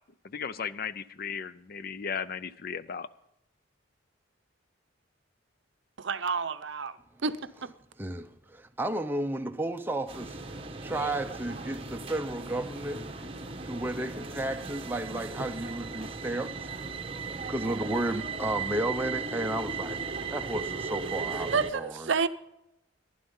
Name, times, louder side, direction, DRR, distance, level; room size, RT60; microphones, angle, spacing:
voice 1, 0.2-3.1, left 6 dB, 45° left, 0.4 m, -36 dB
voice 2, 6.0-7.0 7.2-7.7 21.5-22.3, right 5 dB, 60° right, 0.6 m, -29 dB
voice 3, 8.0-13.1 13.6-16.7 17.5-20.0 20.3-22.1, right 1 dB, 10° right, 0.6 m, -33 dB
sound 1, 10.1-21.7, right 4 dB, 25° right, 1.1 m, -37 dB
15.0 x 11.0 x 5.5 m
head